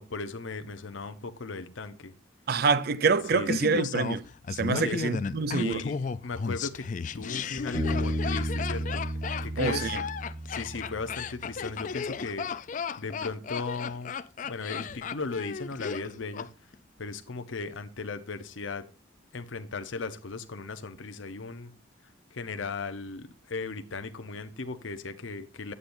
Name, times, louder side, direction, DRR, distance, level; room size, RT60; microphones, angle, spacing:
voice 1, 0.0-2.1 3.3-3.7 4.7-5.0 5.5-6.9 7.1-9.0 9.4-10.0 10.5-12.5 13.0-14.1 14.4-16.5 17.0-18.8 19.3-21.7 22.3-25.7, left 4 dB, 70° left, 0.8 m, -37 dB
voice 2, 2.5-5.8 9.6-10.0, right 4 dB, 50° right, 0.4 m, -26 dB
Laughter, 3.5-16.5 16.7-16.8, left 5 dB, 40° left, 0.3 m, -34 dB
Bass guitar, 7.7-11.2, equal, 15° right, 1.6 m, -32 dB
9.6 x 8.6 x 2.6 m
head